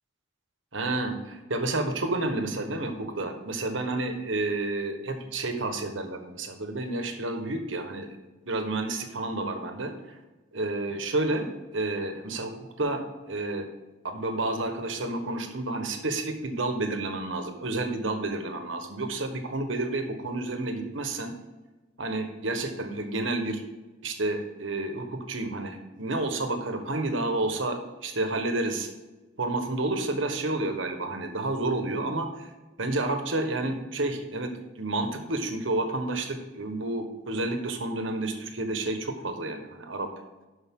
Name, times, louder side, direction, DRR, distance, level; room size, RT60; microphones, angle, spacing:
voice 1, 0.7-8.2 8.4-10.2 10.5-11.5 11.7-13.0 13.3-13.7 14.0-21.3 22.0-23.6 24.0-28.9 29.4-32.5 32.8-34.5 34.8-40.1, right 2 dB, 75° right, 6 dB, 1.3 m, -30 dB
12.0 x 5.4 x 3.7 m, 1.2 s
head